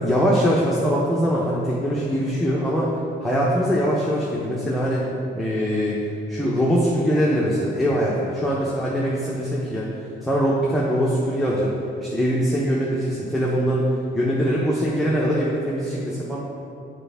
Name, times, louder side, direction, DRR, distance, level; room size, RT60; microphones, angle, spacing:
voice 1, 0.0-2.9 3.2-5.1 5.3-6.0 6.3-9.9 10.2-11.7 12.0-13.9 14.1-16.4, equal, ahead, -6 dB, 0.8 m, -22 dB
6.7 x 4.4 x 3.4 m, 2.7 s
cardioid pair, 90°, 20 cm